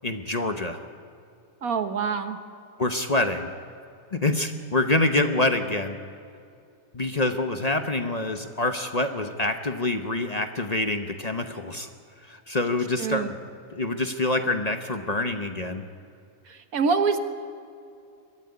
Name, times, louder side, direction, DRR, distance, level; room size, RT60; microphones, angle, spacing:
voice 1, 0.0-0.8 2.8-3.5 4.1-6.0 6.9-11.9 12.2-13.3 13.7-15.8, left 2 dB, 30° left, 6 dB, 1.0 m, -26 dB
voice 2, 1.6-2.4 13.0-13.3 16.5-17.2, right 5 dB, 80° right, 8 dB, 1.7 m, -25 dB
22.0 x 13.5 x 9.7 m, 2.5 s
omnidirectional pair, 1.5 m